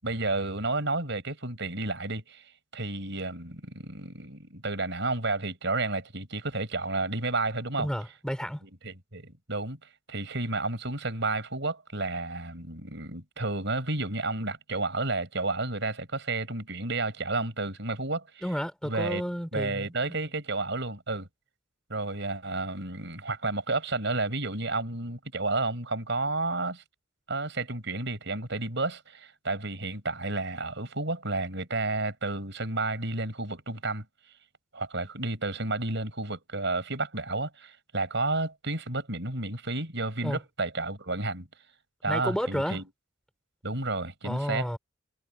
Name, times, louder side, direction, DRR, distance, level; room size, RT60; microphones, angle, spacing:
voice 1, 0.0-2.4 2.7-7.9 8.8-9.8 10.1-18.4 18.8-19.2 19.5-21.3 21.9-26.8 27.3-34.0 34.7-41.5 42.0-42.8 43.6-44.7, right 2 dB, 60° right, 6.1 m, -31 dB
voice 2, 7.8-8.6 18.4-19.9 40.2-40.4 42.1-42.8 44.2-44.8, equal, 5° left, 4.3 m, -31 dB
head